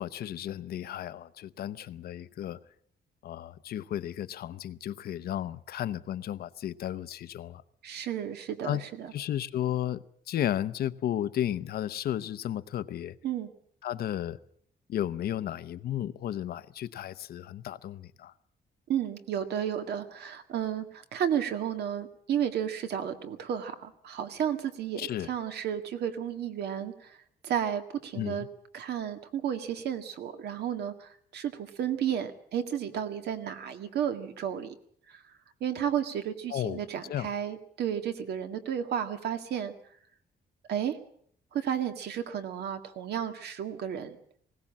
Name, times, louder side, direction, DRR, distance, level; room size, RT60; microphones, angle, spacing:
voice 1, 0.0-2.6 3.2-7.6 8.6-8.8 9.1-13.2 13.8-14.4 14.9-18.3 25.0-25.3 28.1-28.5 36.5-36.8 37.1-37.3, left 11 dB, 65° left, 0.8 m, -33 dB
voice 2, 7.8-9.1 13.2-13.5 18.9-27.2 27.4-28.5 28.7-34.7 35.1-35.3 35.6-39.7 40.7-41.0 41.5-44.2, right 9 dB, 70° right, 1.9 m, -32 dB
20.5 x 17.5 x 7.4 m
cardioid pair, 180°, 18 cm